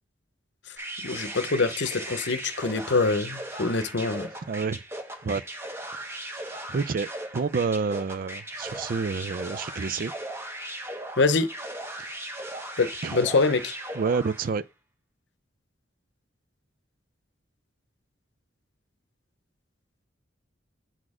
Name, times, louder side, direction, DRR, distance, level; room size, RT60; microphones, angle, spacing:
sound 1, 0.8-14.6, right 1 dB, 15° right, 1.0 m, -38 dB
voice 1, 1.0-4.3 11.2-11.5 12.8-13.7, left 3 dB, 65° left, 0.8 m, -25 dB
voice 2, 4.5-4.8 5.2-5.4 6.1-10.1 12.0-12.1 13.0-13.1 13.9-14.6, right 5 dB, 50° right, 0.4 m, -29 dB
7.7 x 4.2 x 4.9 m
head